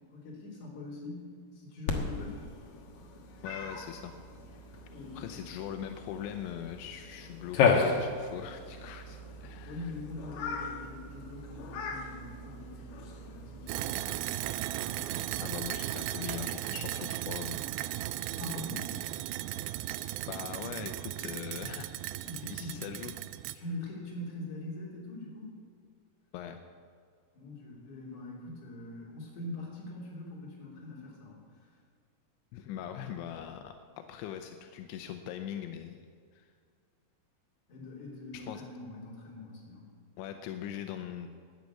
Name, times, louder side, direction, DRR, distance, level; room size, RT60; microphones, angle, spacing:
voice 1, 0.1-2.4 4.9-5.4 9.6-14.1 18.4-18.9 22.3-22.9 23.5-25.5 27.3-31.7 37.7-39.9, left 2 dB, 45° left, -4 dB, 4.4 m, -43 dB
Cat, 1.9-15.5, left 5 dB, 60° left, 2.1 m, -35 dB
voice 2, 3.4-4.1 5.1-9.9 15.4-17.6 20.3-21.8 22.5-23.1 26.3-26.6 32.5-36.1 36.3-36.5 38.3-38.6 40.2-41.3, left 10 dB, 85° left, 6 dB, 3.0 m, -41 dB
sound 1, 13.7-23.6, right 14 dB, 85° right, 2.6 m, -36 dB
11.5 x 9.4 x 8.4 m, 2.1 s
omnidirectional pair, 5.1 m